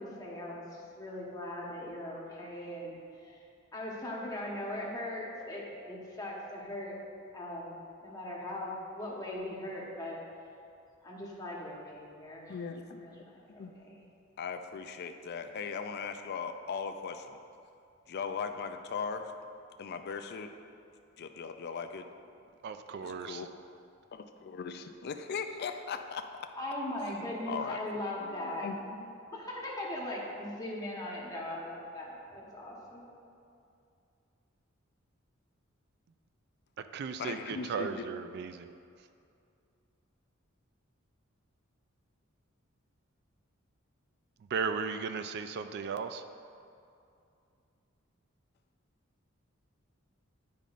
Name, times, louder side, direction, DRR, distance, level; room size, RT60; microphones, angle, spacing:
voice 1, 0.0-3.0 3.2-3.4 3.7-7.0 7.3-7.7 8.0-10.2 11.0-12.6 12.9-13.2 13.5-14.0 26.6-28.7 29.3-33.0, left 1 dB, 20° left, -4 dB, 1.1 m, -39 dB
voice 2, 12.5-13.0 13.6-13.7 14.4-17.4 18.1-19.3 19.8-20.5 21.2-22.1 23.0-23.5 24.1-26.5 27.5-29.2 37.2-38.1, left 5 dB, 55° left, 8 dB, 0.4 m, -39 dB
voice 3, 22.6-23.5 36.8-38.7 44.5-46.2, right 5 dB, 55° right, 9 dB, 0.3 m, -36 dB
9.9 x 5.2 x 2.5 m, 2.5 s
head